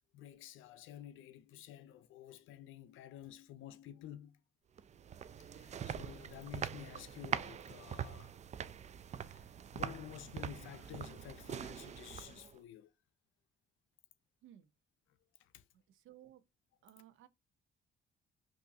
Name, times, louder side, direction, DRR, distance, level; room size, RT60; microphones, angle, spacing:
voice 1, 0.1-4.4 5.4-8.4 9.1-9.5 9.7-12.9 15.4-15.6, left 11 dB, 85° left, 0.6 m, -51 dB
sound 1, 4.8-12.6, right 8 dB, 35° right, 0.4 m, -43 dB
voice 2, 15.7-16.4 16.8-17.3, right 12 dB, 80° right, 0.7 m, -59 dB
5.5 x 2.6 x 2.7 m
cardioid pair, 90°, 20 cm